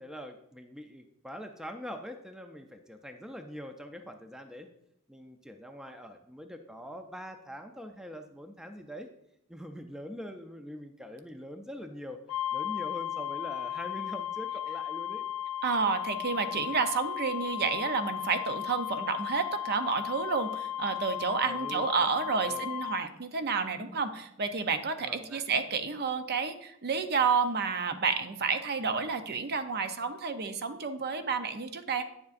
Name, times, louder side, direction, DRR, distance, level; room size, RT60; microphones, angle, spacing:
voice 1, 0.0-4.7 5.1-9.1 9.5-12.2 12.5-15.2 21.5-22.6 25.0-25.4, equal, 5° right, 6 dB, 0.4 m, -43 dB
sound 1, 12.3-23.1, left 11 dB, 80° left, 0.5 m, -35 dB
voice 2, 15.6-32.0, right 5 dB, 50° right, 9 dB, 0.6 m, -30 dB
9.2 x 7.2 x 2.5 m, 0.77 s
head